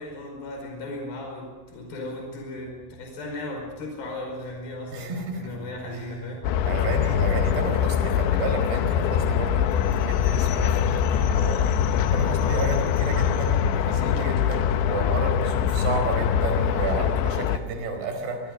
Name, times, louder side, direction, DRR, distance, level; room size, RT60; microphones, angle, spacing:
voice 1, 0.0-6.5, left 1 dB, 50° left, 2 dB, 6.6 m, -36 dB
voice 2, 4.9-5.5 5.9-6.0 6.7-11.7 12.1-18.4, right 3 dB, 55° right, 5 dB, 6.4 m, -31 dB
sound 1, 6.4-17.6, left 9 dB, 75° left, 3.1 m, -23 dB
29.0 x 21.5 x 6.5 m, 1.3 s
omnidirectional pair, 5.5 m